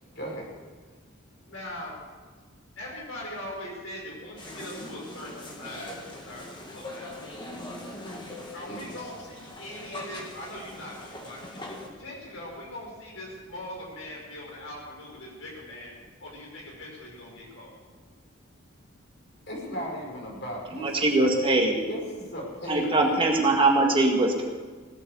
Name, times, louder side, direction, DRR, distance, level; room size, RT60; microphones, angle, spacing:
voice 1, 0.2-0.5 8.7-9.1 19.5-21.3 21.9-23.2, equal, 50° left, -2 dB, 5.5 m, -36 dB
voice 2, 1.5-2.0 2.8-6.5 6.7-7.2 8.5-15.9 16.2-17.7, left 1 dB, 70° left, -2 dB, 5.2 m, -41 dB
sound 1, 4.4-11.9, left 1 dB, 20° left, 2.1 m, -41 dB
voice 3, 20.7-21.8 22.7-24.5, right 2 dB, 25° right, 1 dB, 1.8 m, -22 dB
17.5 x 8.8 x 8.2 m, 1.5 s
head